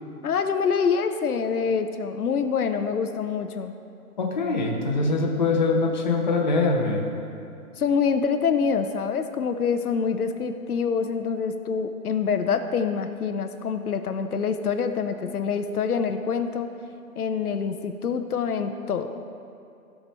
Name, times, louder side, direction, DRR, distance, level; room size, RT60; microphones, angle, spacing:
voice 1, 0.2-3.7 7.8-16.7 17.2-19.2, left 6 dB, 75° left, 8 dB, 0.8 m, -26 dB
voice 2, 4.2-7.1, left 3 dB, 30° left, 0 dB, 0.8 m, -23 dB
15.0 x 6.1 x 4.1 m, 2.6 s
hypercardioid pair, 175°, 45 cm